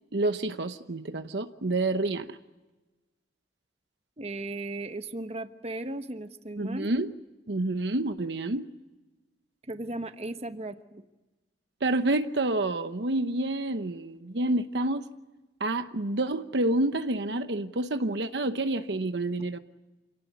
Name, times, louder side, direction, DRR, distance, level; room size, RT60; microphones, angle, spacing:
voice 1, 0.1-2.4 6.6-7.1 7.5-8.7 11.8-15.1 15.6-19.6, right 2 dB, 65° right, 0.9 m, -28 dB
voice 2, 4.2-6.9 9.6-11.0, right 2 dB, 35° right, 1.2 m, -36 dB
27.5 x 18.0 x 9.5 m
head